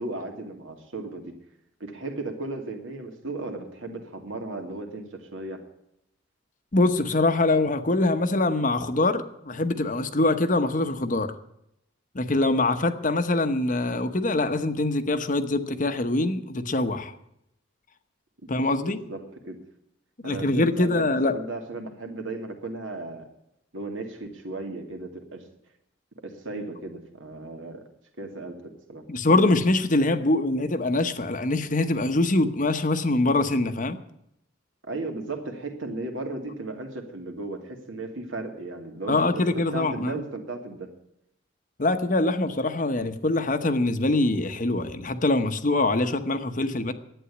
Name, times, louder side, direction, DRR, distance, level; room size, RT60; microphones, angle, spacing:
voice 1, 0.0-1.3 1.8-5.6 18.4-18.5 18.9-19.6 20.2-23.3 23.7-25.5 26.2-27.8 28.2-29.0 34.8-39.2 39.5-40.9, right 2 dB, 75° right, 4 dB, 2.4 m, -35 dB
voice 2, 6.7-11.3 12.1-17.1 18.5-19.0 20.2-21.3 29.1-34.0 39.1-40.2 41.8-46.9, left 2 dB, 40° left, 9 dB, 0.9 m, -24 dB
11.5 x 9.1 x 9.8 m, 0.80 s
head